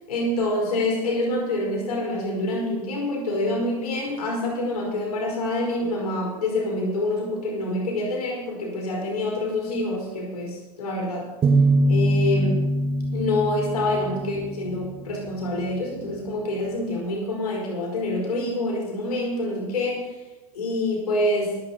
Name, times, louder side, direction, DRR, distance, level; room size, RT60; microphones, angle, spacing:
voice 1, 0.1-11.3 11.9-12.6 13.1-20.1 20.5-21.6, left 1 dB, 80° left, -1 dB, 4.6 m, -26 dB
sound 1, 11.4-15.1, right 1 dB, 30° right, 2.2 m, -22 dB
23.0 x 8.7 x 4.4 m, 1.2 s
hypercardioid pair, 95°, 19 cm